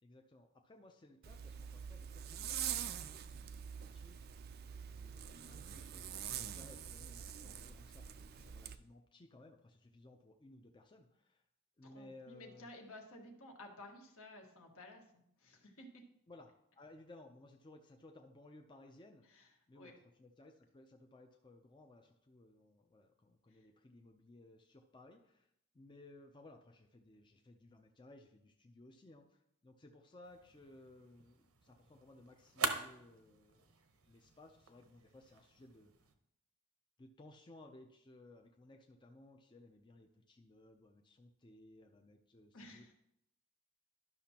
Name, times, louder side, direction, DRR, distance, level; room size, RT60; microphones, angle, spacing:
voice 1, 0.0-4.3 4.8-11.4 11.8-12.7 16.3-19.9 20.2-33.7 34.0-35.9 37.0-42.9, left 2 dB, 20° left, 3 dB, 0.5 m, -60 dB
Zipper (clothing), 1.2-8.8, right 9 dB, 45° right, 0.4 m, -45 dB
voice 2, 11.8-15.1 15.4-16.0 19.3-19.5 19.7-19.9 23.5-23.7 42.5-42.9, left 1 dB, 70° left, 1 dB, 1.5 m, -54 dB
sound 1, 30.2-36.2, right 5 dB, 75° right, 0.8 m, -45 dB
12.0 x 5.9 x 2.9 m, 0.77 s
head